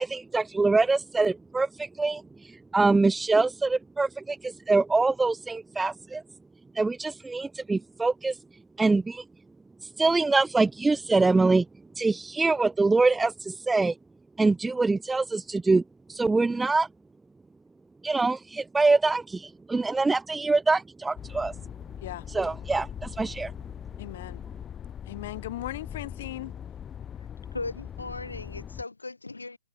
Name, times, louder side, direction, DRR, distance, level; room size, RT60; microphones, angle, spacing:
voice 1, 0.0-2.2 2.7-6.2 6.8-8.3 8.8-9.2 10.0-11.7 12.0-13.9 14.4-15.8 16.1-16.9 18.0-21.5 22.3-23.5, right 3 dB, 5° right, 1.7 m, -24 dB
sound 1, 21.2-28.8, left 9 dB, 15° left, 2.9 m, -41 dB
voice 2, 24.0-24.4 25.1-26.6, left 14 dB, 45° left, 4.9 m, -37 dB
voice 3, 27.5-29.6, left 3 dB, 80° left, 6.1 m, -37 dB
figure-of-eight pair, 115°, 0 cm